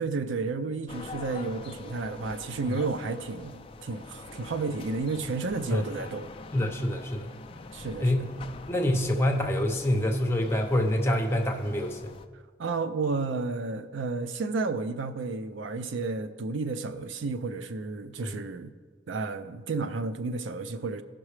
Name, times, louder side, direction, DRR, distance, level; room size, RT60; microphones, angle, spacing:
voice 1, 0.0-6.3 7.7-8.3 12.6-18.7 19.1-21.0, right 3 dB, 75° right, 0.5 m, -32 dB
sound 1, 0.9-12.3, left 3 dB, 30° left, 0.4 m, -45 dB
voice 2, 6.5-7.3 8.0-8.3 8.7-12.1 18.2-18.4, left 1 dB, 15° left, 0.8 m, -26 dB
16.0 x 6.0 x 3.2 m
head